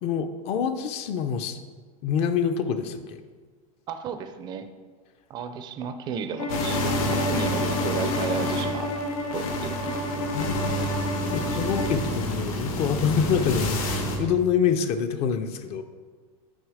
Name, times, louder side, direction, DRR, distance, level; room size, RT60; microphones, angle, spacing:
voice 1, 0.0-1.6 2.0-3.2 10.3-10.8 11.3-15.8, left 7 dB, 35° left, 9 dB, 0.4 m, -26 dB
voice 2, 3.9-4.7 5.3-9.0 9.3-10.3, right 6 dB, 25° right, 9 dB, 0.4 m, -33 dB
Bowed string instrument, 6.4-12.0, left 1 dB, 85° left, 1.7 m, -30 dB
sound 1, 6.5-14.2, equal, 70° left, 1.3 m, -29 dB
6.3 x 5.0 x 4.8 m, 1.5 s
supercardioid pair, 145°, 18 cm